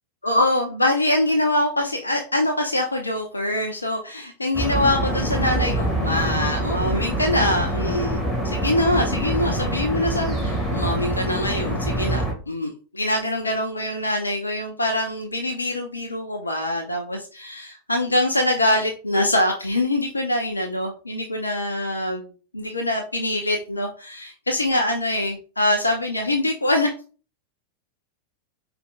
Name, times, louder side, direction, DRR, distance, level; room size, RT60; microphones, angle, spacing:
voice 1, 0.2-26.9, left 1 dB, 80° left, 3 dB, 0.6 m, -24 dB
sound 1, 4.5-12.3, right 1 dB, ahead, 1.8 m, -25 dB
5.0 x 3.4 x 2.4 m, 0.37 s
figure-of-eight pair, 90°, 0 cm